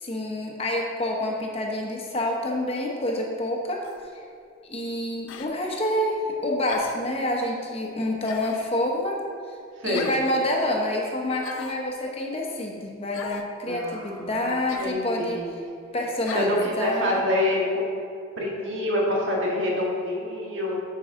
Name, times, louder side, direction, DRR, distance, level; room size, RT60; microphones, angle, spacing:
voice 1, 0.0-3.8 4.6-9.2 9.8-15.4 15.9-17.2, left 1 dB, 30° left, -1 dB, 0.9 m, -27 dB
sound 1, 3.8-4.1 5.3-5.5 6.7-7.1 8.3-8.7 9.9-10.2 11.4-11.8 13.1-13.5 14.7-15.0 16.2-16.5, left 5 dB, 85° left, 0.5 m, -38 dB
voice 2, 13.6-14.3 14.8-15.6 16.3-17.9 18.4-20.8, left 1 dB, 65° right, -3 dB, 1.8 m, -26 dB
10.5 x 4.7 x 3.7 m, 2.4 s
head